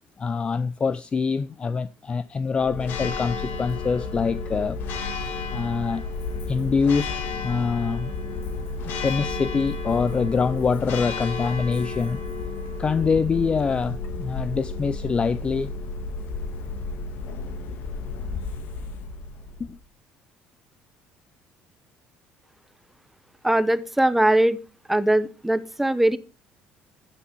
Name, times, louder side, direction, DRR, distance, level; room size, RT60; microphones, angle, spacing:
voice 1, 0.2-4.8 5.5-6.1 6.5-8.1 8.8-12.2 12.8-15.7 19.6-19.8, left 5 dB, 30° left, 0.4 m, -25 dB
Church bell, 2.5-19.8, left 3 dB, 65° left, 1.8 m, -32 dB
voice 2, 23.4-24.6 24.9-26.2, right 1 dB, 5° right, 0.9 m, -20 dB
12.0 x 7.2 x 4.4 m
cardioid pair, 105°, 4 cm